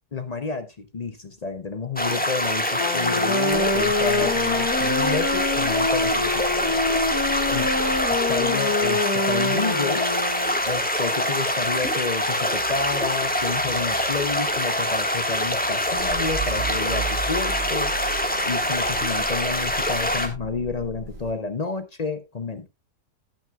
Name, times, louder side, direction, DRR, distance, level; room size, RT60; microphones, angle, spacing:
voice 1, 0.1-6.8 7.5-7.7 8.1-10.1 10.6-18.0 18.5-22.7, left 4 dB, 50° left, 9 dB, 0.5 m, -30 dB
sound 1, 2.0-20.3, left 1 dB, 5° left, 1.3 m, -25 dB
Wind instrument woodwind instrument, 2.7-10.6, left 3 dB, 65° left, 2.0 m, -26 dB
Motor vehicle (road) / Engine starting / Idling, 3.5-11.2 11.5-21.3, right 3 dB, 90° right, 2.8 m, -38 dB
18.5 x 6.1 x 2.3 m, 0.24 s
omnidirectional pair, 1.7 m